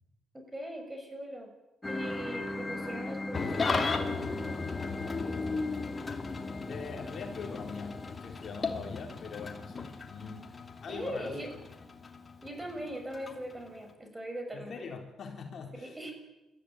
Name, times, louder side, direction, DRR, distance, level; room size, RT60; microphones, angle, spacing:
voice 1, 0.3-1.5 1.9-4.4 4.9-5.7 10.9-11.5 12.4-14.9 15.8-16.1, right 1 dB, 15° right, 5 dB, 6.0 m, -41 dB
sound 1, 1.8-8.2, left 2 dB, 15° left, 1.4 m, -39 dB
Engine starting / Idling, 3.3-13.9, left 4 dB, 35° left, 2.6 m, -36 dB
voice 2, 6.7-10.5 10.8-11.4 14.5-16.0, left 5 dB, 55° left, 3 dB, 3.7 m, -42 dB
21.5 x 14.5 x 9.2 m, 0.98 s
cardioid pair, 90°, 0 cm